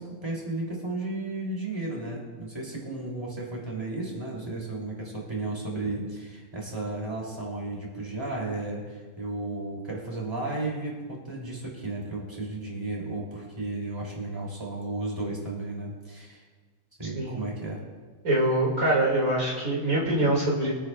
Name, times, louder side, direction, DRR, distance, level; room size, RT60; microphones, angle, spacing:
voice 1, 0.0-16.4 17.0-17.8, right 2 dB, 20° right, -3 dB, 3.2 m, -34 dB
voice 2, 18.2-20.7, right 1 dB, 75° right, -4 dB, 2.8 m, -24 dB
23.5 x 9.1 x 2.4 m, 1.4 s
omnidirectional pair, 1.4 m